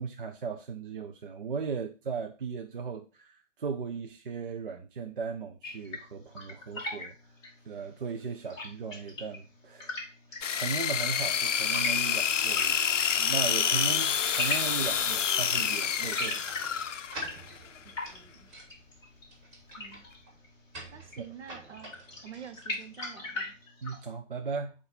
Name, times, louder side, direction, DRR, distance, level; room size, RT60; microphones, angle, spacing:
voice 1, 0.0-7.1 7.7-10.0 10.3-12.8 13.2-16.4 21.2-21.3 23.8-24.7, right 5 dB, 45° right, 0.6 m, -37 dB
sound 1, 5.6-24.1, left 2 dB, 10° left, 0.8 m, -41 dB
sound 2, 10.4-17.4, left 8 dB, 70° left, 0.5 m, -28 dB
sound 3, 15.8-23.6, right 2 dB, 20° right, 2.2 m, -49 dB
voice 2, 17.8-18.5 19.8-20.1 20.9-21.9 22.2-23.5, right 8 dB, 60° right, 1.1 m, -48 dB
7.7 x 2.7 x 5.2 m
figure-of-eight pair, 135°, 38 cm